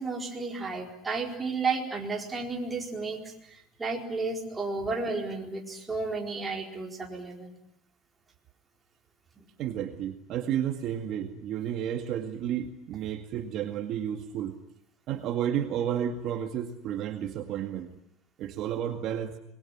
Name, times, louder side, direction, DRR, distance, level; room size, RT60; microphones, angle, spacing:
voice 1, 0.0-7.5, right 4 dB, 15° right, 1 dB, 4.4 m, -33 dB
voice 2, 9.6-14.6 15.1-17.9 18.4-19.3, right 10 dB, 50° right, 6 dB, 2.0 m, -32 dB
26.0 x 21.0 x 9.9 m, 0.75 s
cardioid pair, 150°, 0 cm